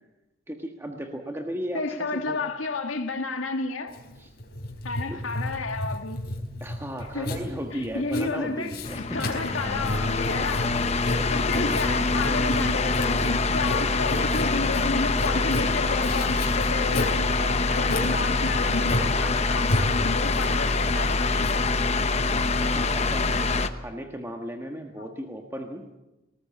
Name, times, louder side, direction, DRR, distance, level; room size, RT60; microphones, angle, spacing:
voice 1, 0.5-2.4 4.2-4.3 5.1-5.3 6.6-9.2 11.5-11.8 22.5-23.4 23.7-25.9, equal, 10° right, 1.4 m, -35 dB
voice 2, 1.7-3.9 4.8-6.2 7.1-7.3 7.7-10.7 11.3-21.6 25.0-25.1, left 3 dB, 85° left, 1.8 m, -31 dB
Writing, 3.9-23.0, left 1 dB, 50° left, 4.3 m, -33 dB
sound 1, 8.8-23.7, left 3 dB, 30° left, 1.0 m, -25 dB
19.5 x 19.0 x 8.6 m
head